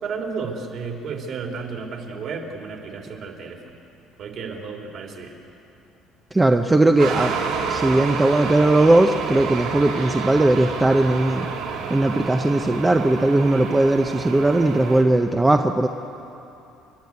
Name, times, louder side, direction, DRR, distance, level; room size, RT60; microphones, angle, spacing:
voice 1, 0.0-3.6 4.2-5.3, right 5 dB, 50° right, 2 dB, 3.1 m, -32 dB
voice 2, 6.3-7.4 7.7-11.5 11.9-15.9, right 2 dB, 10° right, 5 dB, 0.7 m, -18 dB
sound 1, 7.0-15.0, right 5 dB, 85° right, 2.9 m, -29 dB
29.5 x 12.0 x 9.5 m, 2.8 s
cardioid pair, 155°, 0 cm